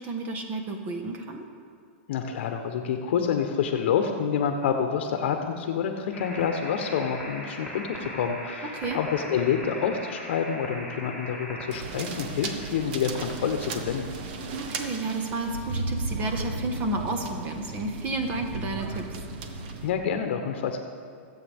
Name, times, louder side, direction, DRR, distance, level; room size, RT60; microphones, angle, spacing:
voice 1, 0.0-1.5 8.7-9.0 14.5-19.2, right 2 dB, 25° right, 4 dB, 1.3 m, -31 dB
voice 2, 2.1-14.1 19.8-20.8, left 7 dB, 65° left, 5 dB, 0.9 m, -28 dB
sound 1, 6.1-11.7, left 1 dB, 5° right, 2.8 m, -39 dB
sound 2, 11.7-19.9, right 3 dB, 50° right, 1.2 m, -35 dB
23.5 x 8.2 x 3.6 m, 2.3 s
supercardioid pair, 155°, 6 cm